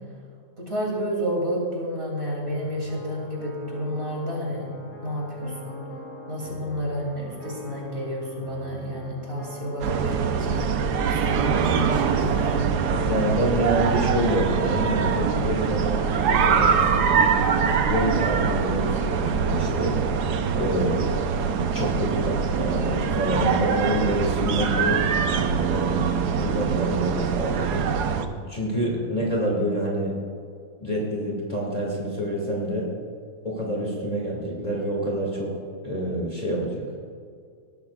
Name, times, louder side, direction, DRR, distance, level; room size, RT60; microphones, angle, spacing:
voice 1, 0.6-4.7 5.0-5.8 6.3-10.7 11.1-12.8 28.8-29.1, equal, 40° right, -3 dB, 3.2 m, -30 dB
sound 1, 2.4-18.4, left 2 dB, 85° left, 2.5 m, -41 dB
sound 2, 9.8-28.3, right 6 dB, 85° right, 1.4 m, -23 dB
voice 2, 13.1-17.3 17.9-20.0 20.6-21.1 21.6-25.1 25.6-26.1 26.4-27.9 28.5-30.1 30.8-32.9 33.4-35.5 35.8-36.8, right 1 dB, 25° left, -3 dB, 2.4 m, -27 dB
18.5 x 12.5 x 2.4 m, 2.3 s
omnidirectional pair, 1.7 m